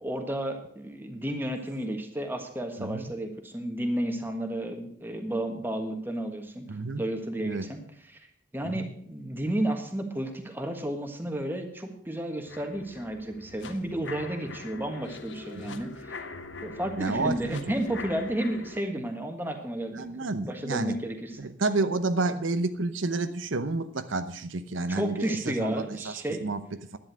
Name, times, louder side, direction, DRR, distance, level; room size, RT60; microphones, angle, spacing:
voice 1, 0.0-6.7 7.0-7.8 8.1-8.3 8.5-16.2 16.6-21.4 24.9-26.4, right 1 dB, 10° right, 4 dB, 1.5 m, -32 dB
voice 2, 2.8-3.1 6.7-7.0 7.4-7.7 8.6-8.9 15.5-15.8 17.0-17.7 19.9-21.0 21.4-27.0, right 3 dB, 85° right, 11 dB, 0.8 m, -30 dB
sound 1, 12.4-18.8, left 3 dB, 70° left, 1.1 m, -43 dB
11.0 x 9.9 x 6.2 m, 0.64 s
head